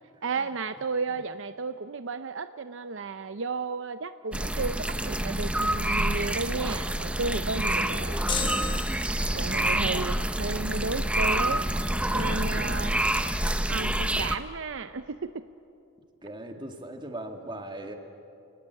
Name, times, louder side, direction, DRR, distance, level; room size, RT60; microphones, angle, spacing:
voice 1, 0.2-8.2 9.3-11.7 12.1-12.9 13.7-15.4, right 4 dB, 60° right, 11 dB, 0.6 m, -33 dB
sound 1, 4.3-14.4, right 1 dB, 5° right, 0.6 m, -27 dB
sound 2, 8.3-9.6, left 4 dB, 25° left, 1.3 m, -33 dB
voice 2, 9.6-10.1 12.5-13.1 16.2-17.9, right 1 dB, 20° right, 4 dB, 2.0 m, -40 dB
29.5 x 19.0 x 8.3 m, 2.6 s
head